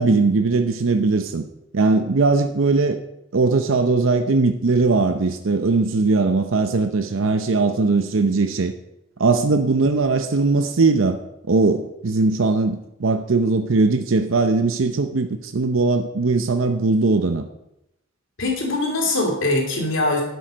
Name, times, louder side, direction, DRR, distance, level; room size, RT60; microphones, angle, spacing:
voice 1, 0.0-1.4 1.7-3.0 3.3-8.7 9.2-11.2 11.5-17.5, right 3 dB, 75° right, 7 dB, 0.7 m, -19 dB
voice 2, 18.4-20.2, left 2 dB, 70° left, 1 dB, 2.9 m, -22 dB
10.5 x 7.9 x 5.1 m, 0.88 s
head